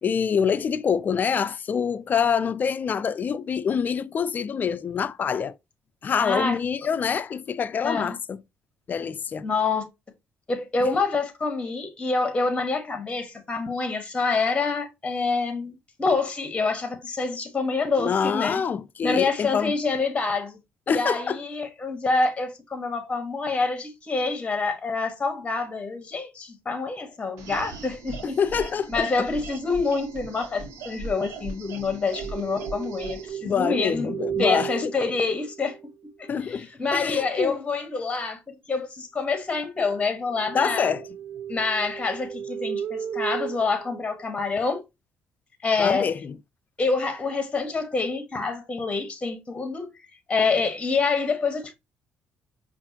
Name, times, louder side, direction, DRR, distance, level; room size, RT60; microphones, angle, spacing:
voice 1, 0.0-5.5 6.0-8.4 8.9-9.5 10.8-10.9 18.0-19.7 20.9-21.4 28.4-29.1 33.4-34.9 36.3-37.6 40.5-41.1 45.8-46.3, left 7 dB, 45° left, 0.4 m, -26 dB
voice 2, 6.2-6.6 7.8-8.2 9.4-9.8 10.5-18.6 19.0-20.6 20.9-28.4 28.9-35.9 36.2-40.9 41.5-44.8 45.6-46.1 46.8-49.9 50.3-51.7, left 4 dB, 25° left, 1.2 m, -27 dB
sound 1, 27.4-33.3, right 3 dB, 90° right, 1.1 m, -39 dB
sound 2, 32.2-35.9 40.3-44.7, right 9 dB, 60° right, 0.4 m, -34 dB
5.2 x 2.5 x 2.7 m
cardioid pair, 85°, 4 cm